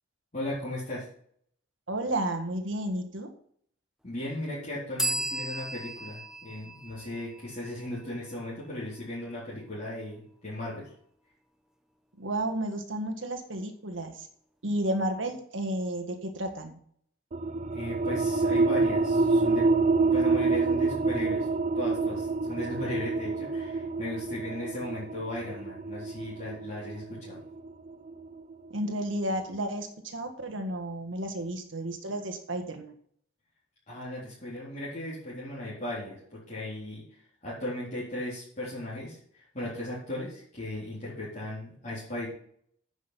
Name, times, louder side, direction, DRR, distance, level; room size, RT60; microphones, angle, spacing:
voice 1, 0.3-1.1 4.0-10.9 17.7-19.6 20.0-21.5 21.7-27.4 33.9-42.3, left 1 dB, 40° left, -9 dB, 4.0 m, -37 dB
voice 2, 1.9-3.3 12.1-14.3 14.6-16.8 28.7-32.9, right 1 dB, 85° right, 5 dB, 1.7 m, -32 dB
sound 1, 5.0-8.5, right 1 dB, 5° right, 0.7 m, -35 dB
sound 2, 17.3-28.5, right 3 dB, 40° right, 0.4 m, -27 dB
9.5 x 6.4 x 5.9 m, 0.64 s
head